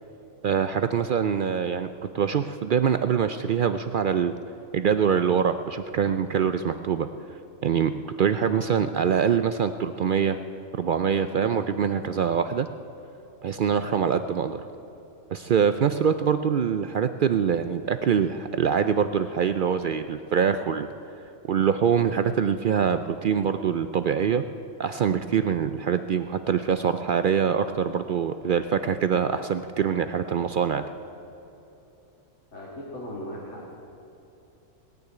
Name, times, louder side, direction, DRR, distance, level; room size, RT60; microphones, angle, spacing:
voice 1, 0.4-4.3 4.7-7.1 7.6-10.4 10.8-12.7 13.4-14.6 15.3-20.9 21.5-24.4 24.8-30.8, right 7 dB, 70° right, 10 dB, 0.5 m, -24 dB
voice 2, 32.5-33.7, equal, 60° left, -6 dB, 2.6 m, -37 dB
19.0 x 6.8 x 9.3 m, 3.0 s
omnidirectional pair, 1.4 m